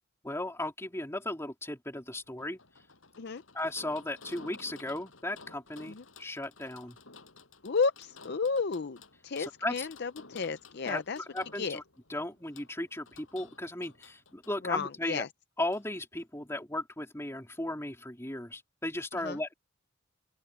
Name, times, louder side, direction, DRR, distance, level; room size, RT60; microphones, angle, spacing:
voice 1, 0.2-2.6 3.5-7.0 9.4-9.9 10.9-11.0 11.3-11.8 12.1-15.2 15.6-19.5, left 1 dB, 15° left, 3.6 m, -36 dB
sound 1, 2.0-14.6 15.7-15.9 16.2-16.3, left 4 dB, 75° left, 6.1 m, -54 dB
voice 2, 7.6-11.2 11.5-11.8 14.6-15.3 19.1-19.4, left 5 dB, 55° left, 0.6 m, -32 dB
head